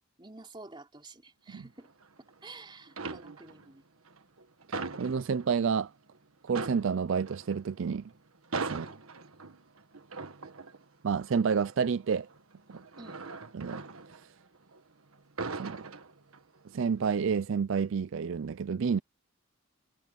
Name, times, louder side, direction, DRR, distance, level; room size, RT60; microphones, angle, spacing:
voice 1, 0.2-1.9 2.4-3.8 8.7-9.0 13.0-13.5, right 3 dB, 20° right, 3.8 m, -50 dB
sound 1, 1.8-2.5 2.9-3.7 4.1-5.8 6.1-6.2 6.5-14.8 15.1-16.6 17.0-17.3, right 4 dB, 80° right, 1.5 m, -41 dB
voice 2, 5.0-5.9 6.4-8.0 8.7-8.9 11.0-12.3 13.5-13.8 15.6-15.8 16.7-19.0, right 6 dB, 60° right, 0.4 m, -29 dB
head